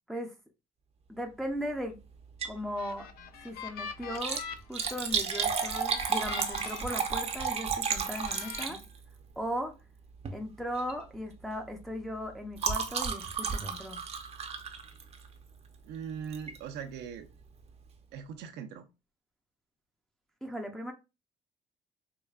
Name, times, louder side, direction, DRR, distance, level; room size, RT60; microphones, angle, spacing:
voice 1, 1.1-2.0 2.4-3.1 3.4-4.4 4.7-8.8 9.4-9.8 10.3-14.0 20.4-20.9, equal, ahead, 0.6 m, -37 dB
Liquid, 2.2-2.7 3.0-3.1 4.0-9.2 10.1-10.4 10.8-11.0 11.3-15.4 16.3-16.6 17.1-17.2 17.4-17.5, right 6 dB, 40° right, 0.7 m, -33 dB
sound 1, 2.5-7.6 8.0-8.6, left 7 dB, 65° left, 0.5 m, -44 dB
voice 2, 15.8-17.3 18.1-18.9, right 7 dB, 85° right, 0.7 m, -40 dB
4.7 x 2.2 x 2.4 m
cardioid pair, 110°, 17 cm